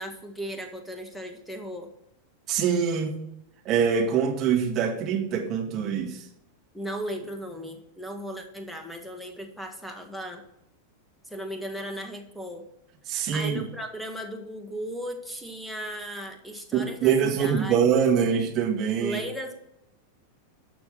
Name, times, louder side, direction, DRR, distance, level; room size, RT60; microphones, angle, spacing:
voice 1, 0.0-1.9 6.7-10.4 11.3-12.7 13.3-18.1 19.0-19.5, equal, ahead, 5 dB, 1.7 m, -36 dB
voice 2, 2.5-3.2 3.7-6.2 13.1-13.6 16.7-19.2, right 7 dB, 35° right, 2 dB, 2.2 m, -24 dB
12.0 x 6.2 x 5.8 m, 0.83 s
figure-of-eight pair, 90°, 0 cm